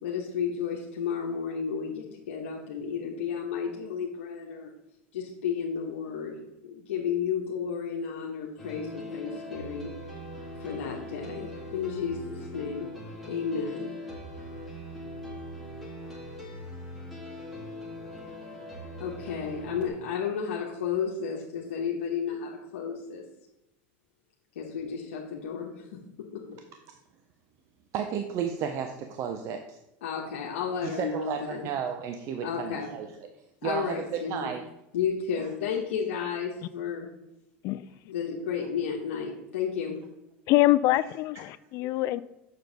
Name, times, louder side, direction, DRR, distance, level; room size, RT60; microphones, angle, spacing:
voice 1, 0.0-4.7 5.1-9.9 10.6-12.9 13.2-13.9 19.0-23.2 24.5-26.0 26.3-26.6 30.0-31.7 32.4-32.9 33.6-34.5 34.9-37.1 38.0-40.0, left 7 dB, 85° left, -3 dB, 1.1 m, -32 dB
sound 1, 8.6-19.9, left 1 dB, ahead, 2.0 m, -41 dB
voice 2, 27.9-29.8 30.8-33.1 33.6-34.6, right 8 dB, 50° right, 6 dB, 0.7 m, -33 dB
voice 3, 40.5-42.2, left 16 dB, 50° left, 16 dB, 0.3 m, -24 dB
7.0 x 6.6 x 3.9 m, 0.89 s
supercardioid pair, 115°, 7 cm